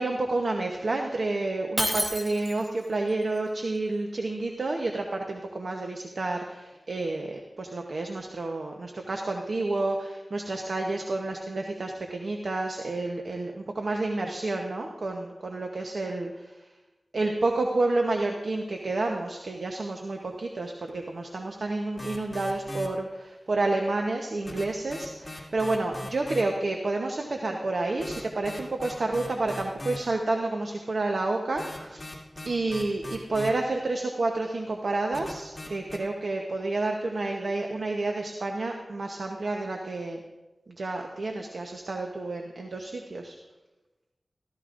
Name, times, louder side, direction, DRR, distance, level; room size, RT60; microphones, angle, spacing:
voice 1, 0.0-16.7 17.1-32.2 32.4-40.2 40.8-43.3, right 2 dB, 75° right, 2 dB, 0.9 m, -30 dB
Shatter, 1.8-2.8, equal, 10° right, 1.1 m, -29 dB
sound 1, 22.0-22.9 24.5-26.4 27.8-30.0 31.6-33.5 35.1-36.0, left 1 dB, 35° left, 2.2 m, -39 dB
14.5 x 14.5 x 2.5 m, 1.1 s
wide cardioid pair, 65°, 0 cm